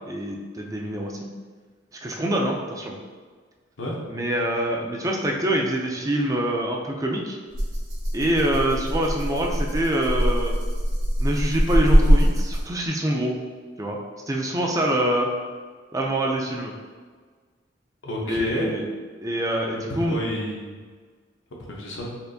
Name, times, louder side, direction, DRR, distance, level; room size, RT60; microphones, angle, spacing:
voice 1, 0.1-1.3 2.0-2.9 4.1-7.4 8.1-10.6 11.2-13.4 13.8-14.0 14.3-15.3 15.9-16.7 18.3-18.8 19.2-20.2, right 1 dB, 20° right, 0 dB, 0.3 m, -25 dB
Rattle (instrument), 7.5-12.9, equal, 90° right, 0.9 m, -22 dB
voice 2, 18.0-18.8 19.7-20.8 21.7-22.2, left 1 dB, 80° left, -3 dB, 0.8 m, -30 dB
4.3 x 2.5 x 2.6 m, 1.5 s
head